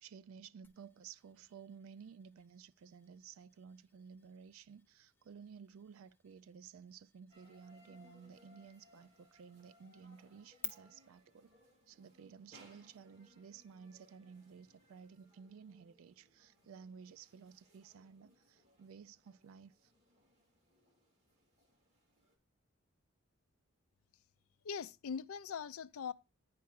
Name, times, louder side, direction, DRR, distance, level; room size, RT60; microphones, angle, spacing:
voice 1, 0.0-11.5 11.9-19.9, right 6 dB, 75° right, 0.3 m, -55 dB
sound 1, 0.6-10.7, left 4 dB, 10° left, 0.6 m, -55 dB
sound 2, 7.3-22.3, equal, 30° right, 2.2 m, -67 dB
voice 2, 24.6-26.1, left 6 dB, 85° left, 0.4 m, -41 dB
9.2 x 4.6 x 4.6 m
head